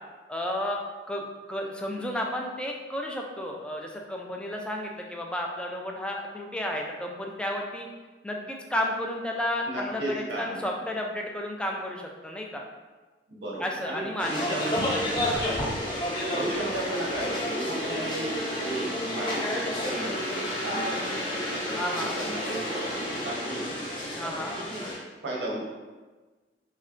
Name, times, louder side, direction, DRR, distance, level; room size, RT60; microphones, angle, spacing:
voice 1, 0.3-7.9 8.2-12.7 13.6-14.3 14.8-14.9 15.2-15.5 21.6-22.2 24.2-24.6, left 1 dB, 5° left, 0 dB, 0.3 m, -32 dB
voice 2, 9.7-10.5 13.3-15.2 16.3-18.3 18.6-23.8 24.3-24.9 25.2-25.6, right 2 dB, 85° right, -4 dB, 1.0 m, -35 dB
sound 1, 14.2-25.0, left 1 dB, 30° left, 0.7 m, -30 dB
3.6 x 3.2 x 2.5 m, 1.3 s
head